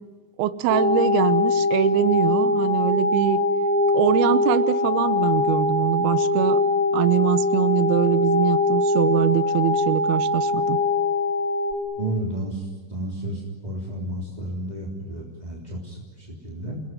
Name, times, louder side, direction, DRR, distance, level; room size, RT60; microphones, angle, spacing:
voice 1, 0.4-3.4 3.9-6.6 6.9-10.8, right 12 dB, 75° right, 12 dB, 2.5 m, -23 dB
sound 1, 0.7-11.7, left 2 dB, 30° right, 2.0 m, -22 dB
voice 2, 12.0-16.8, right 1 dB, 10° right, -2 dB, 2.6 m, -32 dB
29.5 x 21.0 x 9.5 m, 1.4 s
omnidirectional pair, 5.5 m